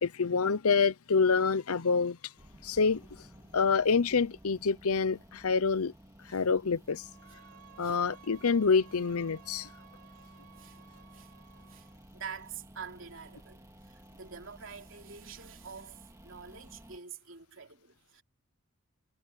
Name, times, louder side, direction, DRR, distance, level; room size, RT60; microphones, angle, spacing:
voice 1, 0.0-2.2 2.6-3.0 3.5-5.9 6.3-7.0 7.8-9.7, left 5 dB, 85° left, 0.8 m, -27 dB
sound 1, 2.4-17.0, right 1 dB, 15° right, 2.5 m, -55 dB
Bowed string instrument, 6.9-12.0, right 7 dB, 80° right, 3.5 m, -57 dB
voice 2, 12.1-18.2, right 6 dB, 60° right, 3.6 m, -46 dB
head